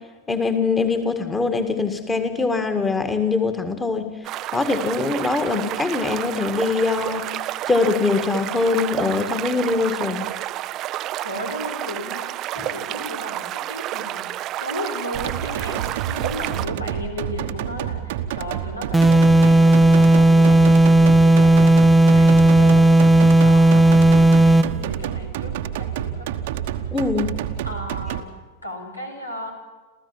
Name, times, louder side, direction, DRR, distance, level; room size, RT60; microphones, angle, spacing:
voice 1, 0.3-4.1 4.5-7.3 7.7-10.3 26.9-27.3, left 4 dB, 15° left, 8 dB, 2.2 m, -22 dB
sound 1, 4.2-16.7, right 14 dB, 35° right, 0.6 m, -30 dB
voice 2, 11.2-20.7 21.0-26.3 27.7-28.3 28.6-29.5, equal, 85° left, 3 dB, 4.1 m, -35 dB
sound 2, 15.1-28.2, right 11 dB, 50° right, 1.1 m, -29 dB
sound 3, 18.9-24.8, right 1 dB, ahead, 0.9 m, -13 dB
27.5 x 15.0 x 7.4 m, 1.3 s
figure-of-eight pair, 90°, 0 cm